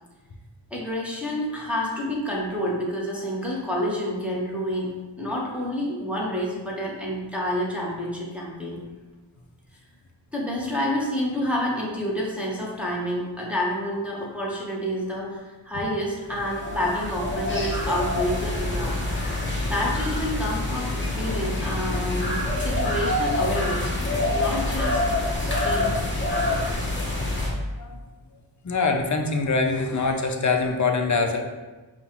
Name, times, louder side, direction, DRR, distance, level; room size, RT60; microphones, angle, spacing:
voice 1, 0.7-8.8 10.3-19.0 19.7-23.9 24.3-25.0 25.4-25.9, equal, 5° right, -4 dB, 0.8 m, -28 dB
sound 1, 16.3-27.5, left 2 dB, 25° left, 0.9 m, -26 dB
voice 2, 26.7-27.0 27.8-28.0 28.6-31.4, left 4 dB, 40° left, 4 dB, 0.5 m, -24 dB
5.3 x 2.4 x 2.9 m, 1.2 s
wide cardioid pair, 45°, 46 cm